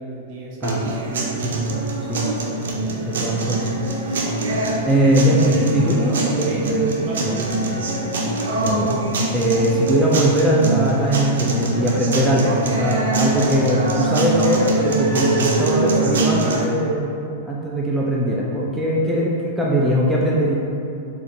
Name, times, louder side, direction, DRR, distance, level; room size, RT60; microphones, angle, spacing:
voice 1, 0.0-1.6 4.1-4.3 4.8-5.1 6.4-7.5 7.7-8.2, right 2 dB, 45° right, -4 dB, 0.7 m, -36 dB
sound 1, 0.6-16.6, right 2 dB, 85° right, 0.5 m, -23 dB
voice 2, 1.4-2.3 3.1-3.7 4.5-7.4 8.6-9.0 9.3-17.2 17.4-20.6, equal, ahead, -6 dB, 0.3 m, -20 dB
4.0 x 2.5 x 2.6 m, 2.7 s
hypercardioid pair, 140°, 0 cm